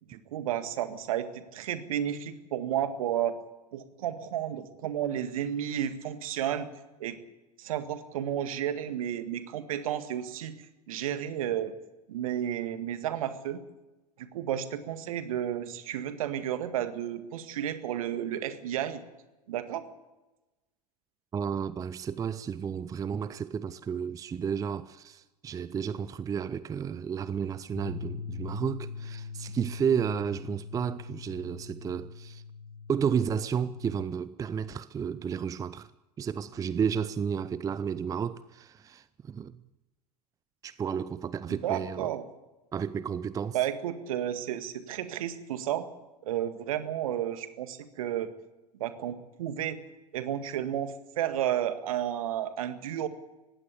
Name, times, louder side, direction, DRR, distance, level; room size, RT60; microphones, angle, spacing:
voice 1, 0.1-3.4 3.7-6.7 7.0-7.2 7.6-10.5 10.9-11.7 12.1-13.6 14.2-19.0 19.5-19.8 41.5-42.3 43.5-45.9 46.2-48.3 48.8-49.8 50.1-53.1, right 10 dB, 60° right, 1.9 m, -32 dB
voice 2, 21.3-32.4 32.9-35.9 36.2-39.6 40.6-42.1 42.7-43.6, right 7 dB, 15° right, 0.6 m, -32 dB
sound 1, 27.8-34.0, left 5 dB, 15° left, 6.8 m, -42 dB
20.0 x 16.5 x 8.3 m
figure-of-eight pair, 85°, 20 cm